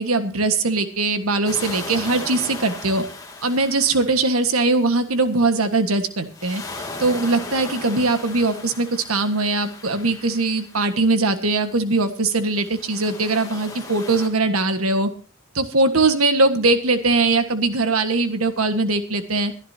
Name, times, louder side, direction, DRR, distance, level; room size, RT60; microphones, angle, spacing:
voice 1, 0.0-3.1 3.4-6.6 7.0-15.1 15.5-19.5, right 3 dB, 85° right, 8 dB, 1.6 m, -21 dB
sound 1, 1.5-5.2 6.2-11.3 12.1-14.3, left 3 dB, 15° left, 2.2 m, -37 dB
23.0 x 11.0 x 2.8 m, 0.37 s
head